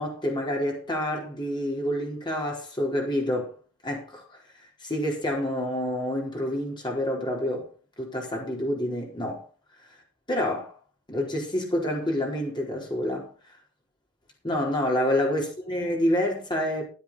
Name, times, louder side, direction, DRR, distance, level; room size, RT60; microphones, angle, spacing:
voice 1, 0.0-3.5 3.8-4.2 4.8-7.7 8.0-9.4 10.3-10.7 11.1-13.3 14.4-16.8, left 1 dB, 20° left, 4.3 m, -28 dB
14.0 x 8.8 x 4.4 m
head